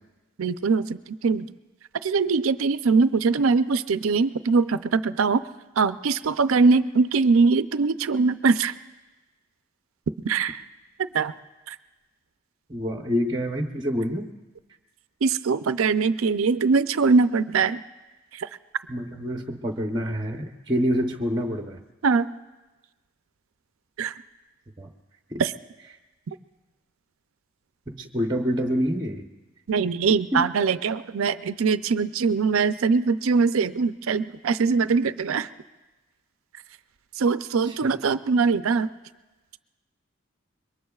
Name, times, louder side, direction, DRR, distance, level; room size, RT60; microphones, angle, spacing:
voice 1, 0.4-1.5 2.0-5.4 5.8-8.7 10.2-10.6 11.1-11.3 11.7-11.8 15.2-17.8 18.3-18.5 22.0-22.3 24.0-24.1 25.4-25.5 29.7-35.5 37.2-38.9, right 4 dB, 80° right, 13 dB, 0.5 m, -22 dB
voice 2, 12.7-14.3 18.9-21.8 24.8-24.9 25.3-25.4 27.9-29.3 30.3-30.4 37.6-37.9, equal, 20° right, 4 dB, 0.8 m, -27 dB
26.0 x 22.5 x 2.4 m, 1.1 s
head